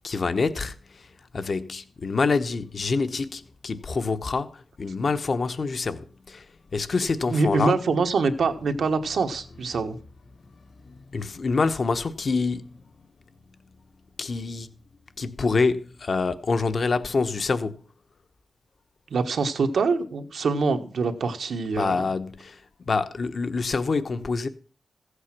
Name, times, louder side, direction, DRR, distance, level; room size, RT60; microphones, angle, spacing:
voice 1, 0.0-7.8 10.5-12.8 14.2-14.7 15.2-17.8 21.7-24.5, left 4 dB, 50° left, 1.0 m, -27 dB
voice 2, 7.3-10.0 19.1-22.1, right 4 dB, 80° right, 1.4 m, -25 dB
15.5 x 8.2 x 6.0 m
wide cardioid pair, 110°, 0 cm